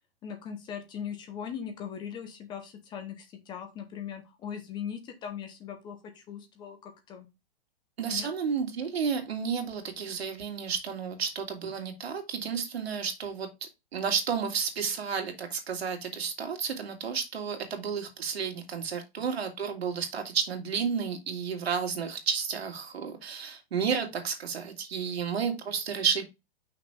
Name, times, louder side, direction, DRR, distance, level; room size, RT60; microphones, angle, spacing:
voice 1, 0.2-7.3 8.1-8.3, left 8 dB, 15° left, 7 dB, 0.8 m, -39 dB
voice 2, 8.0-13.5 13.9-26.2, right 6 dB, 90° right, 4 dB, 2.5 m, -31 dB
5.9 x 4.1 x 4.8 m, 0.23 s
hypercardioid pair, 160°, 30 cm